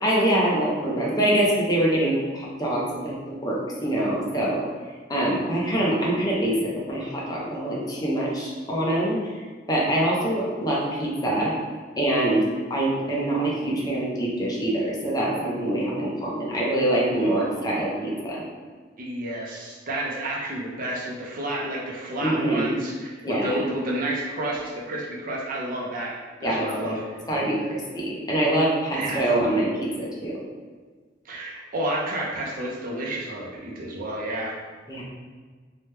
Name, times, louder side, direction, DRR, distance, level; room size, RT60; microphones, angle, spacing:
voice 1, 0.0-4.7 5.1-6.6 6.9-9.2 9.7-11.5 12.0-12.4 12.7-18.4 22.2-22.7 23.2-23.6 26.4-26.9 27.3-30.4 34.9-35.0, right 1 dB, 20° left, -4 dB, 0.6 m, -24 dB
voice 2, 17.1-17.7 19.0-26.1 26.4-27.2 28.9-29.5 31.3-34.6, right 1 dB, 50° right, -3 dB, 0.6 m, -30 dB
2.8 x 2.2 x 3.2 m, 1.5 s
head